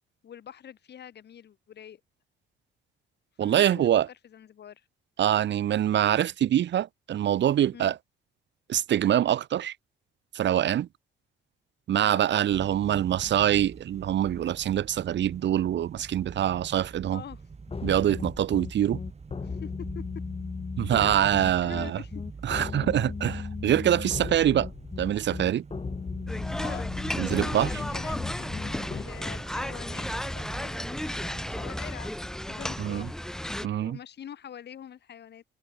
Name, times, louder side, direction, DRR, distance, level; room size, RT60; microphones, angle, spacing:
voice 1, 0.2-2.0 3.4-4.8 7.7-7.9 12.0-12.3 17.1-17.4 19.4-20.0 21.0-21.2 21.6-22.2 26.6-32.1 32.5-33.1 33.6-35.4, left 9 dB, 60° left, 2.4 m, -45 dB
voice 2, 3.4-4.1 5.2-8.0 8.7-9.7 10.3-10.9 11.9-17.2 17.8-19.0 20.8-22.0 22.4-24.7 25.0-25.6 27.2-27.7 32.8-33.1 33.6-34.0, right 11 dB, 65° right, 1.3 m, -24 dB
sound 1, 12.5-31.7, right 4 dB, 35° right, 6.3 m, -45 dB
sound 2, 17.7-29.0, left 4 dB, 30° left, 2.2 m, -36 dB
sound 3, 26.3-33.7, left 1 dB, 5° left, 0.4 m, -34 dB
cardioid pair, 90°, 20 cm